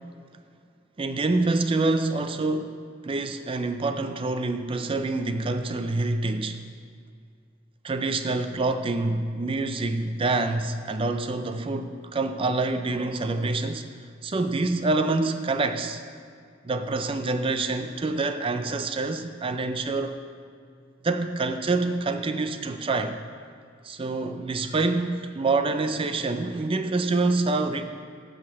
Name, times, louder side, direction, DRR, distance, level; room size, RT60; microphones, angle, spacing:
voice 1, 1.0-2.7 3.0-6.6 7.8-13.9 14.2-16.0 16.6-20.2 21.0-23.2 23.8-27.8, right 3 dB, 25° right, 8 dB, 0.4 m, -26 dB
7.7 x 6.3 x 7.5 m, 2.2 s
head